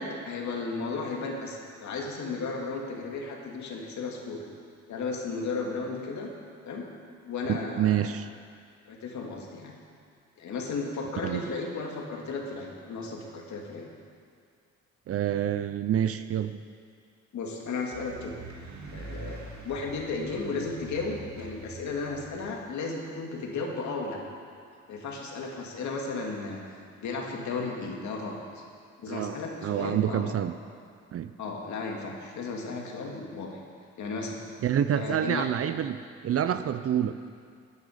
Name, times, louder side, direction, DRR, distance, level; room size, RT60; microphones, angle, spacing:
voice 1, 0.0-4.4 4.9-6.3 6.6-6.9 7.2-8.1 8.9-9.7 10.4-13.9 17.3-18.4 18.9-19.4 19.6-24.2 24.9-28.6 29.0-30.3 31.4-33.6 34.0-34.4 35.0-35.5, left 4 dB, 70° left, 0 dB, 2.2 m, -34 dB
voice 2, 7.5-8.3 11.2-11.4 15.1-16.6 29.1-30.6 31.1-31.3 34.6-36.0 36.2-37.2, right 10 dB, 50° right, 11 dB, 0.5 m, -27 dB
sound 1, 17.9-22.5, right 3 dB, 65° right, 2.1 m, -44 dB
14.5 x 9.7 x 5.1 m, 2.2 s
cardioid pair, 90°, 30 cm